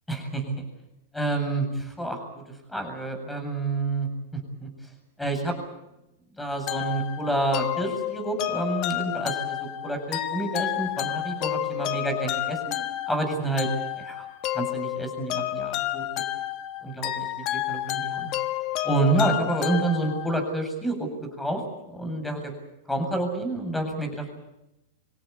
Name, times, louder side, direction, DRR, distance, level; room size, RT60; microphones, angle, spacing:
voice 1, 0.1-0.6 1.1-2.4 2.7-4.7 5.2-5.5 6.4-9.6 9.8-13.7 14.0-14.2 14.5-16.0 16.8-17.3 17.5-18.3 18.8-21.1 21.4-21.6 21.9-22.4 22.9-24.3, right 2 dB, 5° left, 6 dB, 7.9 m, -28 dB
sound 1, 6.7-20.5, left 14 dB, 45° left, 1.4 m, -31 dB
27.0 x 16.5 x 9.9 m, 0.91 s
hypercardioid pair, 110°, 0 cm